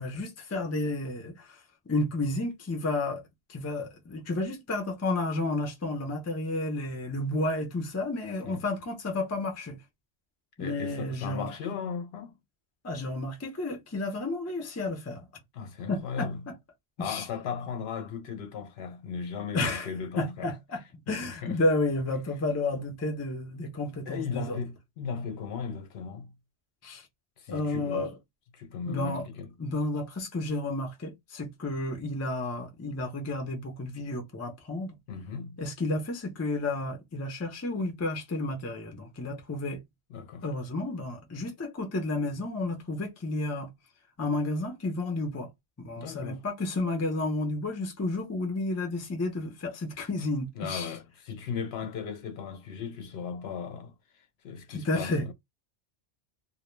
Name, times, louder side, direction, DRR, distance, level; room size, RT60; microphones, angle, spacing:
voice 1, 0.0-3.2 3.5-9.8 10.6-11.5 12.8-15.3 15.9-16.5 17.0-17.3 19.5-19.9 20.2-20.8 21.1-24.6 26.8-27.1 27.5-28.1 28.9-29.3 29.6-35.0 35.6-39.8 40.4-43.7 44.2-45.5 45.8-51.0 54.7-55.3, left 2 dB, 20° left, 0.4 m, -31 dB
voice 2, 10.6-12.4 15.5-16.4 17.0-20.5 21.1-21.6 24.1-26.3 27.4-28.1 28.5-29.5 35.1-35.6 40.1-40.5 46.0-46.4 50.6-55.3, left 6 dB, 65° left, 0.8 m, -37 dB
2.1 x 2.1 x 3.0 m
omnidirectional pair, 1.2 m